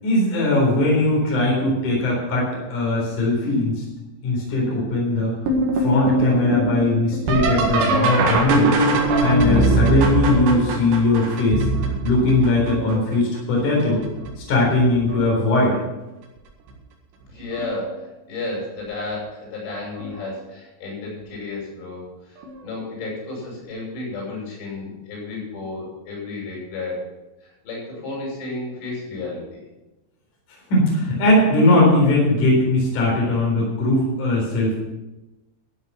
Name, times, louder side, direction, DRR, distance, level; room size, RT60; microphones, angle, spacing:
voice 1, 0.0-3.7 4.2-5.3 5.7-8.7 9.2-11.6 12.0-14.0 14.5-15.8 30.7-34.8, left 2 dB, 45° left, -3 dB, 5.1 m, -19 dB
sound 1, 5.5-13.1 13.8-14.3 14.8-15.4 16.7-16.8 17.5-17.8 20.0-20.1 22.4-22.5, right 2 dB, 70° right, 3.8 m, -21 dB
voice 2, 17.3-27.0 27.4-29.6, left 2 dB, 85° left, -4 dB, 8.5 m, -32 dB
14.5 x 8.2 x 6.0 m, 1.0 s
omnidirectional pair, 5.5 m